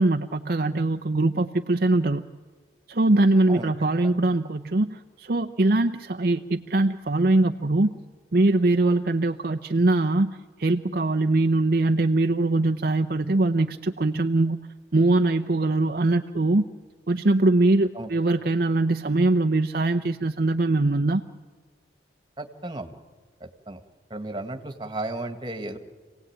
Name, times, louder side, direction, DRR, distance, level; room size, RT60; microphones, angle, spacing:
voice 1, 0.0-2.2 2.9-7.9 8.3-14.6 14.9-16.7 17.1-21.2, right 2 dB, 55° right, 5 dB, 0.7 m, -22 dB
voice 2, 22.4-22.9 23.4-23.8 24.1-25.8, right 2 dB, 25° right, 6 dB, 1.9 m, -34 dB
27.5 x 18.0 x 8.9 m, 1.5 s
head